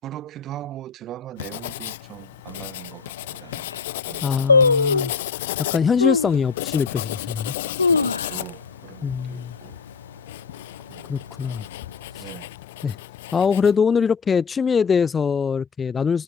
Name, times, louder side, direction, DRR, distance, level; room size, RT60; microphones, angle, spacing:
voice 1, 0.0-3.7 4.1-4.3 5.7-6.1 7.9-9.8 10.9-11.1 12.2-12.6, right 13 dB, 30° right, 6.5 m, -39 dB
Writing, 1.4-13.8, left 17 dB, 55° left, 1.9 m, -34 dB
sound 1, 2.5-2.6 3.2-3.3 3.5-3.9 4.5-5.2 6.0-6.4 6.9-7.0 7.5-8.7 9.0-9.1 9.4-9.8 10.2-10.5 11.2-11.9 12.2-12.3, left 4 dB, 75° left, 0.5 m, -20 dB
voice 2, 4.2-5.1 5.6-7.5 9.0-9.5 11.1-11.6 12.8-13.0 13.3-16.2, left 6 dB, 20° left, 1.4 m, -22 dB
figure-of-eight pair, 90°, 0 cm